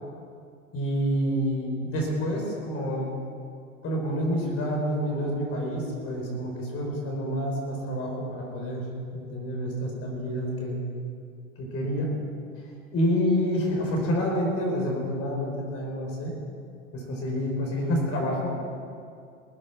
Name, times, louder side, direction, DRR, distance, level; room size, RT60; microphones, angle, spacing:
voice 1, 0.7-3.1 3.8-8.8 9.1-10.8 11.6-12.2 12.9-16.3 16.9-18.5, equal, 30° left, -1 dB, 4.7 m, -28 dB
20.0 x 9.8 x 6.0 m, 2.4 s
hypercardioid pair, 110°, 43 cm